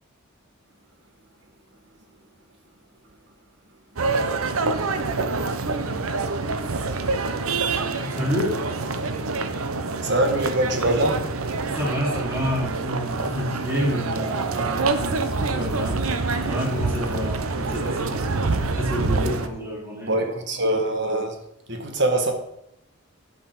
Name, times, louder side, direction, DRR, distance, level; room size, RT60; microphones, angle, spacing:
sound 1, 4.0-19.5, right 3 dB, 80° right, 0.9 m, -26 dB
voice 1, 8.0-8.6 11.7-16.0 16.4-20.2, equal, 10° right, -3 dB, 2.8 m, -29 dB
voice 2, 10.0-11.2 20.1-21.3 21.7-22.3, right 1 dB, 55° right, 5 dB, 1.6 m, -23 dB
11.0 x 5.4 x 6.0 m, 0.80 s
head